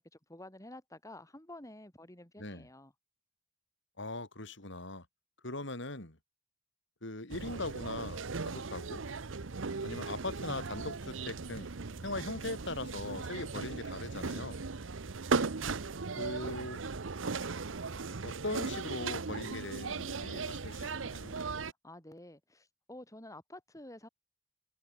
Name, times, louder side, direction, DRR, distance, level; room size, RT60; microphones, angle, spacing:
voice 1, 0.0-2.9 21.8-24.1, left 1 dB, 15° left, 6.3 m, -50 dB
voice 2, 4.0-5.1 5.4-6.2 7.0-9.0 9.8-11.7 12.0-14.6 16.2-16.8 17.3-17.4 18.2-21.3, left 2 dB, 65° left, 4.7 m, -40 dB
sound 1, 7.3-21.7, right 4 dB, 80° right, 0.9 m, -37 dB
head